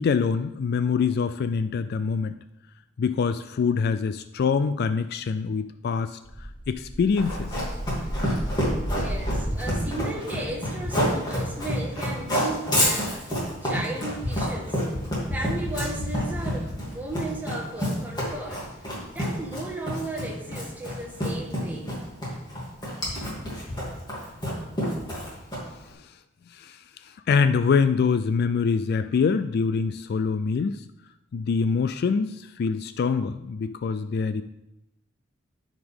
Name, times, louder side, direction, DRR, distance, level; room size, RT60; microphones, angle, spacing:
voice 1, 0.0-2.3 3.0-6.2 6.7-7.5 26.6-26.8 27.3-30.8 31.3-34.4, left 5 dB, 50° left, 11 dB, 0.3 m, -24 dB
sound 1, 6.2-10.6, equal, 25° right, 1.4 m, -33 dB
Run, 7.2-25.8, equal, 20° left, 2.7 m, -28 dB
voice 2, 8.9-14.8 15.3-18.7 19.1-21.9, right 2 dB, 10° right, -2 dB, 1.5 m, -35 dB
13.0 x 5.0 x 3.6 m, 0.89 s
head